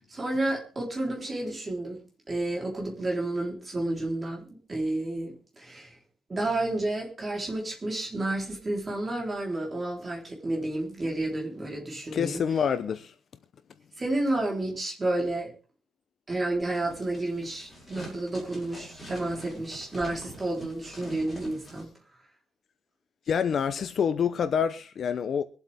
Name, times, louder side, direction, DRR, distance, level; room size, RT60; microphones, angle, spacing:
voice 1, 0.1-2.0 2.3-6.0 6.3-12.4 14.0-15.5 16.3-21.9, right 2 dB, 20° right, 3.8 m, -31 dB
voice 2, 12.1-13.1 23.3-25.4, left 7 dB, 40° left, 0.7 m, -27 dB
sound 1, 16.6-21.8, right 1 dB, 10° left, 5.5 m, -45 dB
24.0 x 8.0 x 3.5 m
cardioid pair, 175°, 0 cm